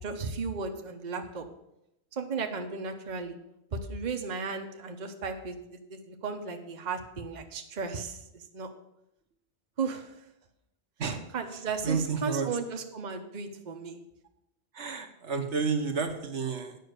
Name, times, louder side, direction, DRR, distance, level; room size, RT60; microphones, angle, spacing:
voice 1, 0.0-1.5 2.1-3.4 3.7-8.7 9.8-10.1 11.3-14.0, right 5 dB, 40° right, 4 dB, 1.0 m, -35 dB
voice 2, 11.5-12.5 14.7-16.8, right 5 dB, 75° right, 4 dB, 1.4 m, -31 dB
9.4 x 5.7 x 8.0 m, 0.85 s
omnidirectional pair, 1.2 m